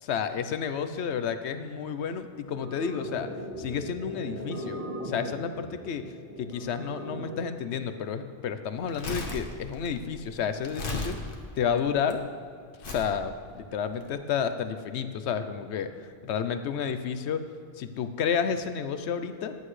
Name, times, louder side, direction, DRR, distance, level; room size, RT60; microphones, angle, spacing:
voice 1, 0.0-3.3 3.6-4.8 5.0-6.0 6.4-11.2 11.6-12.3 12.9-17.4 17.8-19.6, left 7 dB, 85° left, 10 dB, 1.0 m, -31 dB
sound 1, 2.5-7.5, equal, 55° right, 2.7 m, -39 dB
Crumpling crinkling, 8.8-12.1 12.8-13.1 13.9-14.0, left 2 dB, 55° left, 1.3 m, -36 dB
14.5 x 9.9 x 3.2 m, 2.3 s
omnidirectional pair, 1.1 m